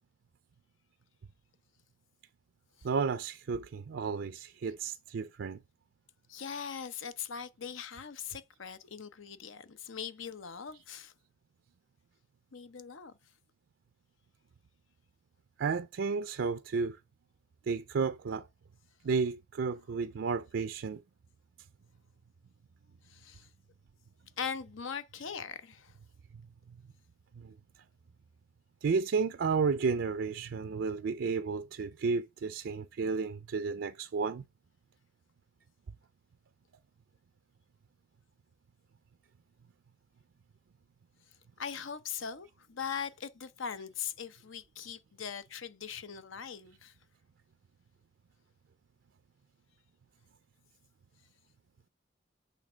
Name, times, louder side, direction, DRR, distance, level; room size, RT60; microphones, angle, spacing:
voice 1, 2.8-5.6 15.6-17.0 17.7-18.5 19.0-21.0 27.4-27.5 28.8-34.4, right 5 dB, 75° right, 0.4 m, -32 dB
voice 2, 6.3-11.1 12.5-13.1 23.1-23.5 24.4-25.9 41.6-46.9, left 7 dB, 90° left, 0.8 m, -40 dB
8.5 x 3.4 x 6.1 m
head